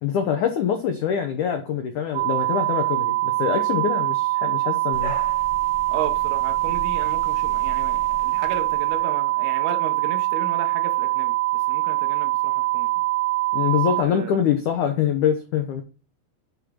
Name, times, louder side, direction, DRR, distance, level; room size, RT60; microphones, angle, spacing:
voice 1, 0.0-5.2 13.5-15.8, left 8 dB, 85° left, 1.7 m, -24 dB
sound 1, 2.1-14.0, right 19 dB, 85° right, 3.2 m, -23 dB
sound 2, 4.9-9.2, left 1 dB, 70° left, 1.1 m, -39 dB
voice 2, 5.9-13.0 14.0-14.4, right 7 dB, 70° right, 2.8 m, -34 dB
10.5 x 3.8 x 6.3 m
omnidirectional pair, 5.1 m